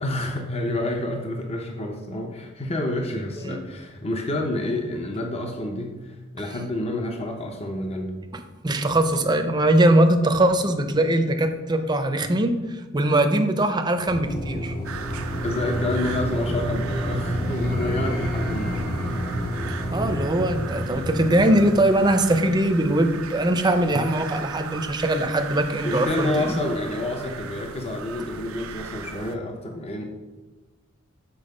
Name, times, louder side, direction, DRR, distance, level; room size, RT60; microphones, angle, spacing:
voice 1, 0.0-8.1 11.8-11.9 15.4-18.8 25.8-30.0, left 1 dB, 30° left, 2 dB, 0.7 m, -29 dB
voice 2, 8.6-12.5 12.9-14.7 19.9-26.5, right 1 dB, 20° right, 7 dB, 0.6 m, -21 dB
sound 1, 14.1-23.1, equal, 45° left, 1.2 m, -29 dB
sound 2, 14.8-29.4, right 6 dB, 85° right, 0.6 m, -38 dB
7.1 x 4.6 x 6.5 m, 1.2 s
head